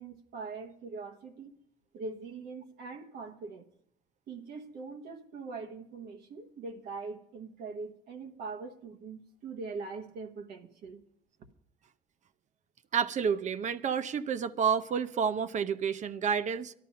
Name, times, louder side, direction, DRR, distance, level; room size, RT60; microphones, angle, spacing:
voice 1, 0.0-1.6 1.9-3.7 4.3-11.0, right 4 dB, 70° right, 3 dB, 1.3 m, -42 dB
voice 2, 12.9-16.7, right 7 dB, 45° right, 12 dB, 0.6 m, -29 dB
12.5 x 12.0 x 5.7 m, 0.72 s
cardioid pair, 110°, 17 cm